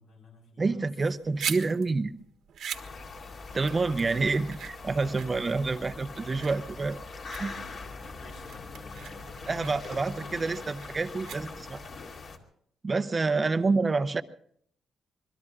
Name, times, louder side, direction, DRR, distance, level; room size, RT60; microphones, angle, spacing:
voice 1, 0.0-0.9 3.5-4.3 7.4-10.6 13.4-13.6, left 2 dB, 80° left, -2 dB, 4.8 m, -53 dB
voice 2, 0.6-2.1 3.5-7.0 7.4-7.5 9.5-11.8 12.8-14.2, right 3 dB, 25° right, 11 dB, 0.8 m, -28 dB
sound 1, 1.0-11.9, right 8 dB, 70° right, 1.5 m, -41 dB
sound 2, 2.7-12.4, left 3 dB, 50° left, 2.3 m, -42 dB
26.5 x 22.0 x 2.5 m, 0.65 s
cardioid pair, 135°, 0 cm